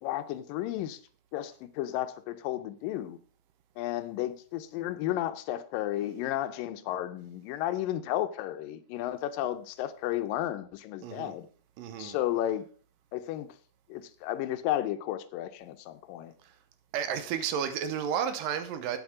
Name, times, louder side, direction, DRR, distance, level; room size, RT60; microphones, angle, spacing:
voice 1, 0.0-1.0 1.3-3.2 3.8-11.5 12.0-12.7 13.1-13.5 13.9-16.3, left 13 dB, 85° left, 2.3 m, -33 dB
voice 2, 11.0-11.3 11.8-12.2 16.9-19.0, right 8 dB, 80° right, 2.5 m, -32 dB
8.7 x 8.0 x 4.8 m
omnidirectional pair, 4.0 m